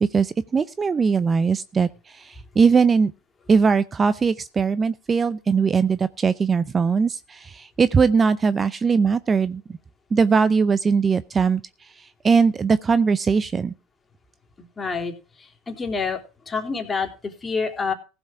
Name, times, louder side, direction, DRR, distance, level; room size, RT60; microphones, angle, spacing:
voice 1, 0.0-3.1 3.5-9.8 10.1-13.7, right 5 dB, 25° right, 0.6 m, -20 dB
voice 2, 14.6-16.2 16.5-17.9, left 4 dB, 20° left, 3.3 m, -28 dB
15.5 x 7.1 x 4.8 m
supercardioid pair, 105°, 0 cm